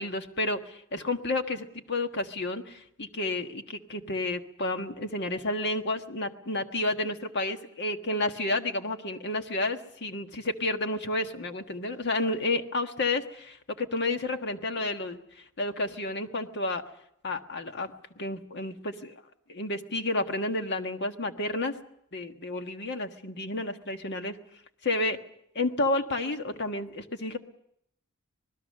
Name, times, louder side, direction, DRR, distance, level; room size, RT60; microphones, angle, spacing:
voice 1, 0.0-15.2 15.6-16.8 17.2-19.1 19.5-21.7 22.1-24.4 24.8-25.2 25.5-27.4, left 2 dB, 55° left, 6 dB, 1.5 m, -31 dB
26.0 x 20.0 x 6.6 m, 0.74 s
head